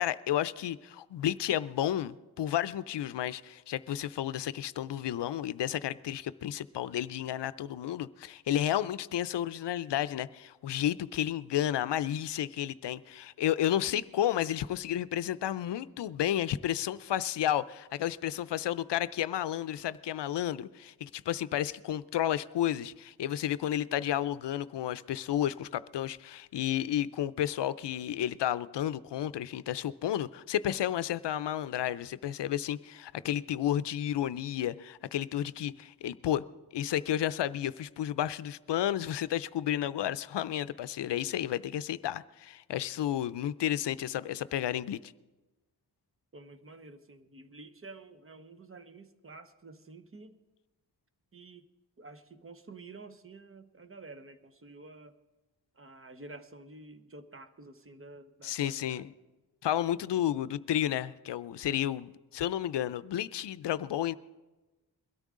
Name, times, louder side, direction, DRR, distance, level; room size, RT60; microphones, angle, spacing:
voice 1, 0.0-36.4 36.7-45.1 58.4-59.1 59.6-64.1, left 11 dB, 85° left, 16 dB, 0.5 m, -32 dB
voice 2, 46.3-50.4 51.3-51.6 52.0-55.1 55.8-59.0, right 3 dB, 30° right, 10 dB, 0.8 m, -50 dB
22.0 x 13.0 x 3.7 m, 1.1 s
wide cardioid pair, 115°, 41 cm